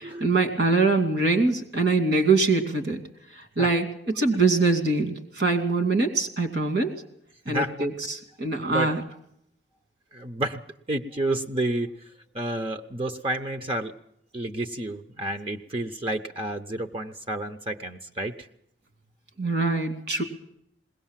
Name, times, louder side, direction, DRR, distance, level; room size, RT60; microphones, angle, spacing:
voice 1, 0.0-3.0 3.3-6.9 7.5-9.0 19.4-20.2, right 3 dB, 65° right, 6 dB, 2.6 m, -23 dB
voice 2, 7.5-7.9 8.7-9.0 10.1-10.6 10.9-11.9 12.3-13.9 14.3-18.5, right 1 dB, 30° right, 7 dB, 0.8 m, -30 dB
21.0 x 18.0 x 7.4 m, 0.73 s
head